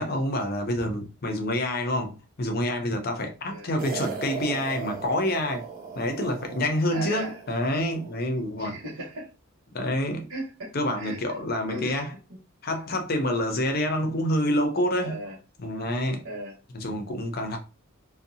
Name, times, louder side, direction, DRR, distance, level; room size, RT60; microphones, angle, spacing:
voice 1, 0.0-5.6 6.0-8.7 9.7-10.3 10.7-12.1 12.6-15.2 15.6-16.2 16.7-17.6, left 1 dB, 45° left, 0.6 m, -27 dB
sound 1, 3.8-8.2, right 5 dB, 45° right, 0.7 m, -38 dB
voice 2, 6.9-7.4 8.6-9.3 10.3-11.2 11.7-12.0 12.7-12.8 15.0-15.4 16.2-16.6, right 1 dB, 75° right, 0.9 m, -37 dB
2.6 x 2.2 x 2.6 m
head